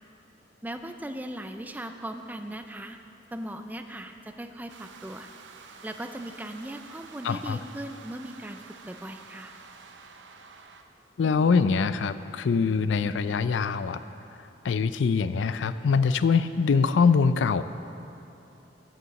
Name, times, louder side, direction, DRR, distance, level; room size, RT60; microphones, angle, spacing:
voice 1, 0.6-3.0 3.3-5.3 5.8-9.5, right 1 dB, 10° right, 7 dB, 0.4 m, -38 dB
sound 1, 4.7-10.8, right 5 dB, 80° right, 0.7 m, -49 dB
voice 2, 7.2-7.6 11.2-14.0 14.6-17.6, left 5 dB, 85° left, 13 dB, 0.4 m, -23 dB
11.0 x 6.9 x 7.0 m, 3.0 s
head